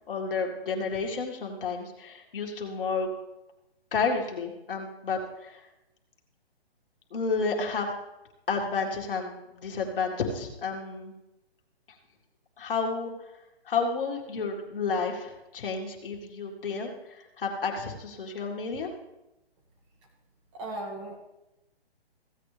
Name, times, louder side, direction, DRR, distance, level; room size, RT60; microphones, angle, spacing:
voice 1, 0.1-3.1 3.9-5.6 7.1-7.9 8.5-11.1 12.6-13.1 13.7-18.9, left 4 dB, 60° left, 0 dB, 2.1 m, -31 dB
voice 2, 20.5-21.2, right 1 dB, 30° right, 0 dB, 2.0 m, -36 dB
15.5 x 8.5 x 3.3 m, 0.92 s
hypercardioid pair, 155°, 32 cm